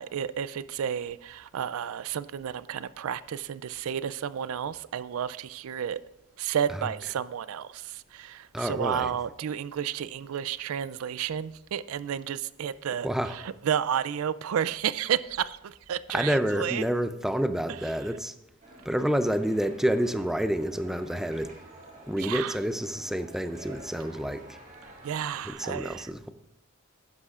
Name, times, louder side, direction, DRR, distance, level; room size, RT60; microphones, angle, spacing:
voice 1, 0.0-6.0 6.4-16.9 22.2-22.6 25.0-26.1, right 8 dB, 70° right, 0.4 m, -31 dB
voice 2, 8.5-9.1 13.0-13.4 16.1-18.3 18.8-21.5 22.1-24.6 25.4-26.3, equal, ahead, 0.4 m, -28 dB
sound 1, 18.6-25.5, right 2 dB, 40° right, 3.4 m, -49 dB
11.5 x 9.8 x 2.4 m
head